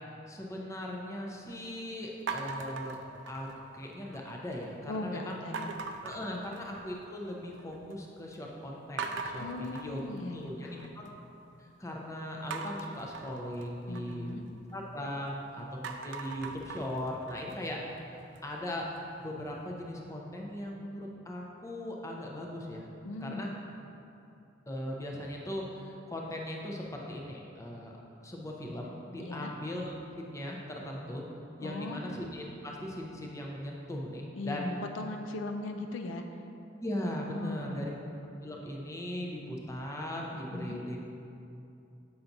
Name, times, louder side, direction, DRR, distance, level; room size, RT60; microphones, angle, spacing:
voice 1, 0.3-3.0 3.3-5.4 6.0-10.1 10.3-10.7 10.9-11.1 11.6-14.4 14.7-17.8 18.4-18.9 19.2-22.9 23.2-23.5 24.7-27.9 28.2-31.2 31.6-34.7 36.8-37.9 38.4-41.0, left 1 dB, 15° left, -1 dB, 0.6 m, -39 dB
sound 1, 2.3-3.8 4.1-4.7 5.5-7.1 7.4-8.0 8.3-8.4 9.0-11.1 12.5-15.3 15.7-18.6, right 4 dB, 65° right, 0.4 m, -41 dB
voice 2, 4.9-5.7 6.2-6.4 9.4-10.9 13.9-14.5 23.0-23.5 29.2-29.5 31.6-32.0 34.3-36.2 37.3-37.9 40.3-40.8, left 2 dB, 75° left, 4 dB, 0.4 m, -38 dB
7.0 x 5.7 x 2.6 m, 2.7 s
head